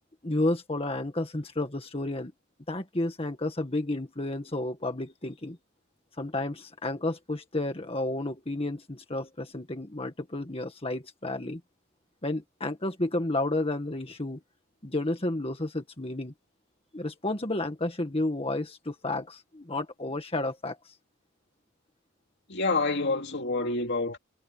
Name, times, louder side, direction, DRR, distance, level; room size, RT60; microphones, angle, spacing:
voice 1, 0.2-2.3 2.7-5.6 6.2-11.6 12.2-14.4 14.8-16.3 16.9-20.9, left 2 dB, 30° left, 1.8 m, -31 dB
voice 2, 22.5-24.2, left 3 dB, 60° left, 2.6 m, -27 dB
head